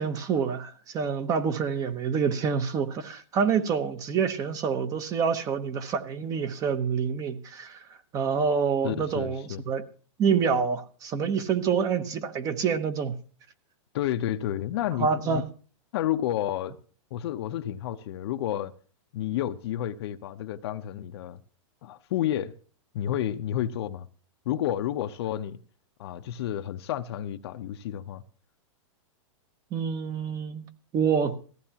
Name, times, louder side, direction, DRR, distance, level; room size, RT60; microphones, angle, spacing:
voice 1, 0.0-7.8 8.1-9.8 10.2-13.2 15.0-15.5 29.7-30.7 30.9-31.4, right 6 dB, 20° right, 0.9 m, -27 dB
voice 2, 8.8-9.6 13.9-15.4 15.9-16.8 17.1-18.7 19.1-21.4 21.8-22.5 22.9-24.1 24.5-25.6 26.0-28.2, left 11 dB, 55° left, 0.8 m, -30 dB
18.0 x 14.5 x 2.9 m
supercardioid pair, 160°, 17 cm